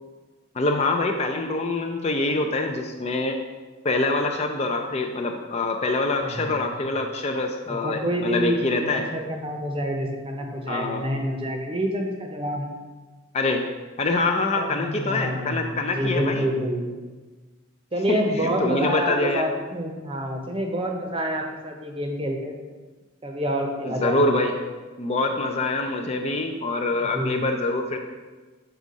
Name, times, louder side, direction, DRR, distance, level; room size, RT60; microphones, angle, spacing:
voice 1, 0.5-3.4 3.8-9.1 10.7-11.1 13.3-13.7 14.0-16.5 18.1-19.4 23.8-24.5 25.0-28.0, left 2 dB, 30° left, 4 dB, 0.4 m, -25 dB
voice 2, 6.2-6.7 7.7-12.7 14.6-16.8 17.9-22.5 23.2-24.2 27.1-27.4, equal, 25° right, 2 dB, 0.8 m, -28 dB
6.8 x 3.5 x 5.1 m, 1.3 s
head